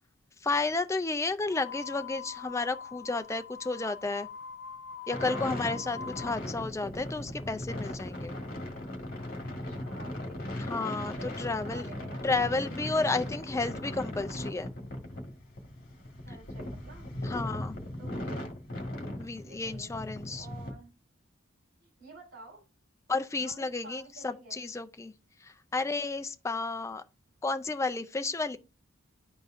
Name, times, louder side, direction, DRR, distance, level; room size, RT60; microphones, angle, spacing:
voice 1, 0.4-4.3 5.1-8.3 10.6-11.9 12.2-14.7 17.2-17.8 19.2-20.4 23.1-25.1 25.4-27.0 27.4-28.6, left 3 dB, 15° left, 0.3 m, -32 dB
sound 1, 1.5-6.4, left 7 dB, 80° left, 0.7 m, -43 dB
sound 2, 5.1-20.7, left 1 dB, 45° left, 1.5 m, -38 dB
voice 2, 9.7-10.6 11.1-12.3 16.2-17.1 17.7-18.5 19.4-19.9 20.3-20.9 21.8-22.6 23.4-24.6, right 3 dB, 50° right, 3.0 m, -51 dB
11.5 x 4.0 x 2.5 m
head